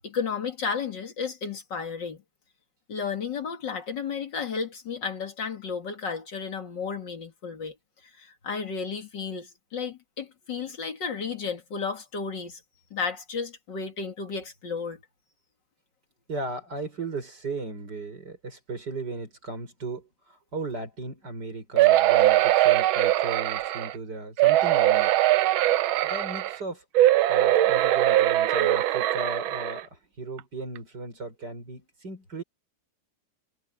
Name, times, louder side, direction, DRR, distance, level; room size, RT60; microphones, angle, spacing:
voice 1, 0.0-2.2 2.9-7.7 8.2-12.6 12.9-15.0, left 5 dB, 60° left, 2.8 m, -33 dB
voice 2, 16.3-20.1 20.5-25.1 26.0-26.8 27.3-29.9 30.2-32.4, right 3 dB, 55° right, 6.1 m, -36 dB
sound 1, 21.8-23.9 24.4-26.6 26.9-29.8 30.4-30.5 30.8-30.9, right 14 dB, 85° right, 1.5 m, -21 dB
omnidirectional pair, 2.2 m